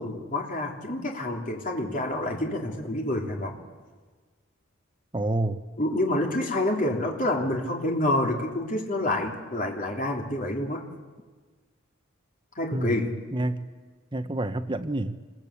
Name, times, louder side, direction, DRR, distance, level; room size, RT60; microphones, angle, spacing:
voice 1, 0.0-3.5 5.8-10.9 12.5-13.2, left 1 dB, 40° left, 0 dB, 3.3 m, -28 dB
voice 2, 5.1-5.6 12.7-13.7 14.1-15.2, right 1 dB, 25° right, 9 dB, 0.9 m, -28 dB
28.5 x 21.5 x 8.4 m, 1.4 s
head